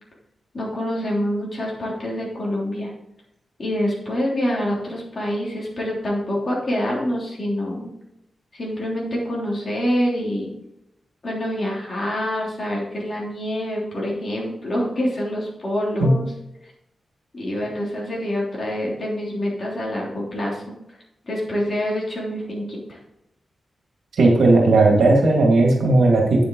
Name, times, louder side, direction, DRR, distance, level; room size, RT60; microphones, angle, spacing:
voice 1, 0.5-2.9 3.6-7.9 8.5-10.5 11.2-16.2 17.3-20.6 21.3-23.0, equal, 35° left, -4 dB, 3.2 m, -26 dB
voice 2, 24.2-26.4, right 2 dB, 75° right, 0 dB, 2.1 m, -15 dB
9.2 x 7.5 x 3.9 m, 0.85 s
wide cardioid pair, 160°, 0 cm